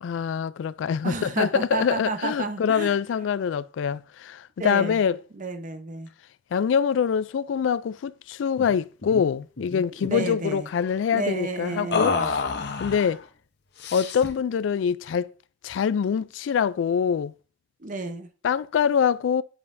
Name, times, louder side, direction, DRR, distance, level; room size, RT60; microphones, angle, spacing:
voice 1, 0.0-5.2 6.5-12.1 12.8-13.2 13.9-15.3 15.6-17.3 18.4-19.4, left 7 dB, 85° left, 0.3 m, -24 dB
voice 2, 1.0-3.0 4.6-5.0 5.3-6.1 10.0-10.7 11.1-12.3 17.8-18.3, right 3 dB, 45° right, 0.8 m, -31 dB
sound 1, 8.6-8.8 9.0-9.2 9.6-10.3 11.9-13.2 13.8-14.4, left 4 dB, 65° left, 0.8 m, -28 dB
9.5 x 5.5 x 2.6 m
head